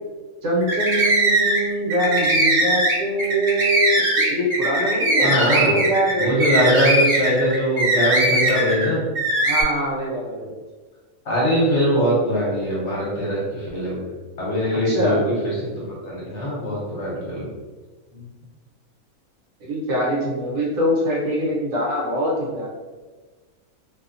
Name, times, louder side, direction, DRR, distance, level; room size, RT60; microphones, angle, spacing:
voice 1, 0.4-6.3 9.5-10.5 14.9-15.2 18.1-18.3 19.6-22.7, equal, 65° right, -5 dB, 1.1 m, -23 dB
sound 1, 0.6-1.6 1.9-8.9 9.2-9.6, right 1 dB, 50° right, 0.8 m, -20 dB
voice 2, 5.2-5.7 6.2-9.0 11.2-14.1 14.4-17.5, equal, 55° left, -6 dB, 1.0 m, -22 dB
2.7 x 2.2 x 2.4 m, 1.3 s
omnidirectional pair, 1.5 m